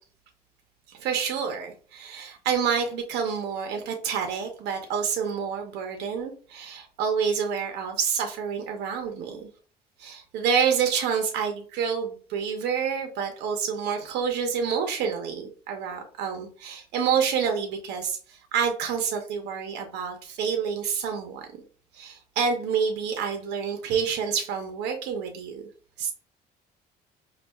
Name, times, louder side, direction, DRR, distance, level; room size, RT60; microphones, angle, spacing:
voice 1, 0.9-9.4 10.0-21.5 21.9-25.6 26.0-26.1, right 6 dB, 85° right, 4 dB, 0.7 m, -28 dB
5.3 x 2.3 x 2.2 m, 0.42 s
cardioid pair, 110°, 17 cm